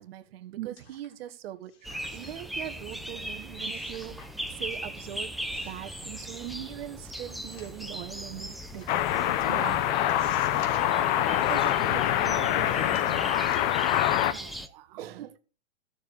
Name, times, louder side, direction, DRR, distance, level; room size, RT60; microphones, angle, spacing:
voice 1, 0.0-4.2 4.5-5.3 5.6-9.6 11.2-13.5 15.0-15.4, right 12 dB, 60° right, 1.6 m, -41 dB
sound 1, 0.8-1.3 1.6-2.5 2.9-3.0 3.6-4.3 4.6-5.1 5.4-6.6 7.3-8.1 8.7-9.0 9.4-9.5 10.1-11.0 11.4-12.0 12.6-14.1 14.4-14.6, left 6 dB, 60° left, 3.8 m, -53 dB
sound 2, 1.8-14.7, right 1 dB, ahead, 0.6 m, -39 dB
sound 3, 8.9-14.3, left 12 dB, 40° left, 0.9 m, -25 dB
voice 2, 9.5-10.1 14.3-15.0, right 16 dB, 40° right, 0.7 m, -40 dB
13.5 x 6.8 x 4.9 m
hypercardioid pair, 140°, 35 cm